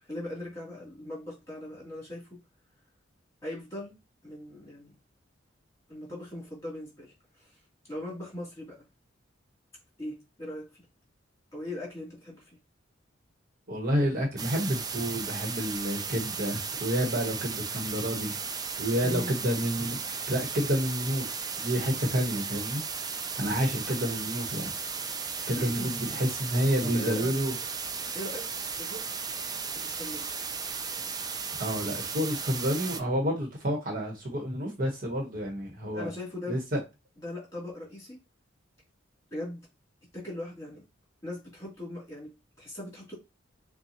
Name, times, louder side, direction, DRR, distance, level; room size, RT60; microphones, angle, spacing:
voice 1, 0.1-2.2 3.4-4.0 4.2-4.9 5.9-7.1 7.9-8.8 10.0-10.7 11.5-12.4 19.0-19.3 25.6-25.9 26.8-27.3 28.1-29.1 29.7-30.3 35.9-36.6 37.2-38.2 39.3-39.6 40.1-40.8 41.2-43.1, left 1 dB, 15° left, 2.9 m, -39 dB
voice 2, 13.7-18.4 18.8-20.0 20.3-22.8 23.4-24.7 25.5-27.5 31.6-36.1 36.5-36.8, equal, 50° right, 1.2 m, -29 dB
sound 1, 14.4-33.0, right 5 dB, 20° right, 0.4 m, -35 dB
6.7 x 2.2 x 2.9 m
head